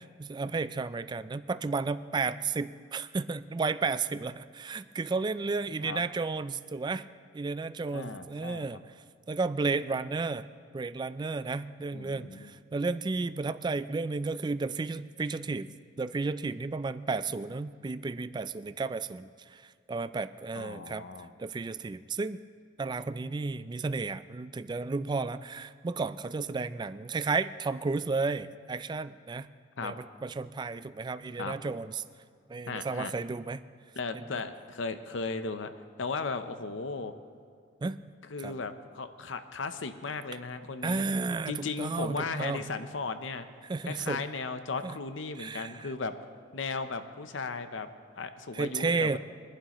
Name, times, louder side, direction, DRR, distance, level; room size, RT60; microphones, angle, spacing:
voice 1, 0.0-7.0 7.3-8.8 9.3-10.5 10.7-15.7 16.0-19.6 19.9-21.1 21.4-22.4 22.8-29.5 29.8-32.0 32.5-33.6 37.8-38.0 38.4-38.5 40.8-42.6 43.7-44.2 44.8-45.0 45.4-45.9 48.5-49.2, right 4 dB, 25° right, 13 dB, 0.3 m, -32 dB
voice 2, 7.9-8.6 11.9-12.5 20.6-21.3 29.8-30.0 31.4-31.6 32.7-33.1 33.9-35.7 36.0-37.1 38.2-41.0 41.5-43.5 43.8-46.1 46.5-47.9 48.2-49.2, left 4 dB, 75° left, 10 dB, 0.7 m, -36 dB
22.5 x 11.5 x 3.0 m, 2.1 s
head